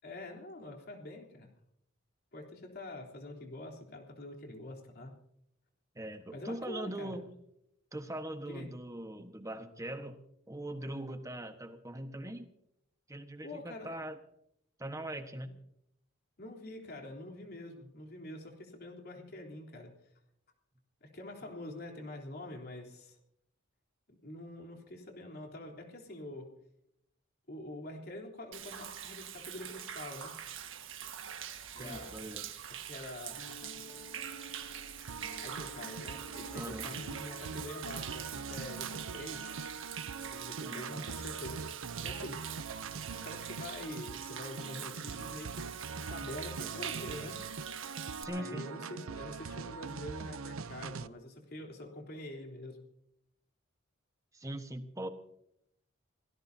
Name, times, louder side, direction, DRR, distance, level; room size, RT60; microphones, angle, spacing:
voice 1, 0.0-1.5 2.3-5.2 6.3-7.2 8.5-8.7 13.4-14.0 16.4-19.9 21.0-23.2 24.2-26.5 27.5-30.4 31.7-32.2 32.8-33.7 35.3-39.6 40.2-42.4 43.1-47.4 48.3-52.8, left 1 dB, 50° left, 1 dB, 3.7 m, -46 dB
voice 2, 5.9-7.3 7.9-10.2 10.5-12.5 13.1-14.2 14.8-15.5 31.7-32.5 36.5-36.9 40.7-41.1 48.2-48.6 54.3-55.1, right 1 dB, 15° right, 7 dB, 1.3 m, -41 dB
Human voice / Rain / Stream, 28.5-48.2, right 9 dB, 65° right, 1.6 m, -44 dB
Piano, 33.4-38.7, equal, 85° left, 2.1 m, -52 dB
sound 1, 35.1-51.1, right 5 dB, 90° right, 0.7 m, -43 dB
25.5 x 17.5 x 2.8 m, 0.75 s
head